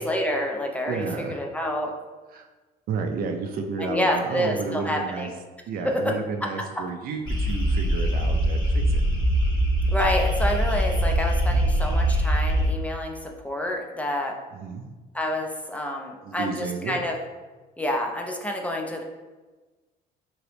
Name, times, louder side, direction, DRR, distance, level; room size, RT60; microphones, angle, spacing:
voice 1, 0.0-2.0 3.8-5.3 5.8-6.1 9.9-14.4 15.1-17.2 17.8-19.0, left 1 dB, 10° left, 1 dB, 0.4 m, -28 dB
voice 2, 0.9-1.4 2.3-2.5 2.9-5.3 5.7-9.0 11.5-11.7 14.5-14.9 16.2-17.0, right 5 dB, 60° right, 5 dB, 0.4 m, -32 dB
sound 1, 7.3-12.7, equal, 25° left, 1.0 m, -22 dB
3.0 x 2.8 x 3.2 m, 1.2 s
cardioid pair, 110°, 17 cm